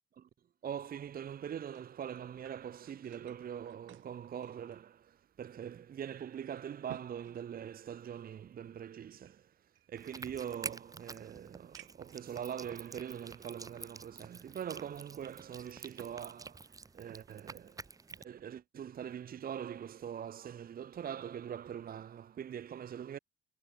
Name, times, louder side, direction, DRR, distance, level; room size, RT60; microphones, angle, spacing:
voice 1, 0.6-23.2, right 9 dB, 50° right, 0.8 m, -43 dB
sound 1, 1.3-5.3 5.7-5.8 6.3-8.3 9.2-10.6 11.2-11.3 11.7-12.2 12.9-13.0 15.3-16.3 16.6-17.4 17.9-18.1, right 15 dB, 80° right, 0.7 m, -58 dB
sound 2, 9.9-18.2, right 4 dB, 15° right, 0.5 m, -49 dB
cardioid pair, 90°, 20 cm